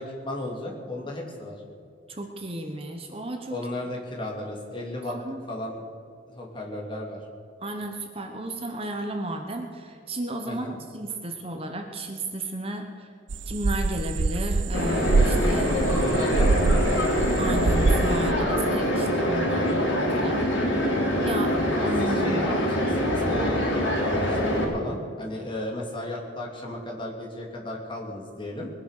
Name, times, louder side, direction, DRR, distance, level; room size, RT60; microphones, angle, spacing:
voice 1, 0.0-1.6 3.5-5.1 5.5-5.8 6.3-7.2 10.5-10.8 15.8-17.1 20.3-20.9 22.0-28.7, left 1 dB, 25° left, -2 dB, 2.9 m, -34 dB
voice 2, 2.1-3.6 5.0-5.4 7.6-13.1 13.5-15.7 16.5-16.6 17.4-20.5 21.2-22.6, right 1 dB, 30° right, 4 dB, 1.1 m, -33 dB
sound 1, 13.3-16.9 17.2-18.3, right 3 dB, 75° right, 0.6 m, -24 dB
sound 2, 14.7-24.6, equal, 75° left, 4.0 m, -24 dB
21.0 x 10.0 x 6.7 m, 2.4 s
head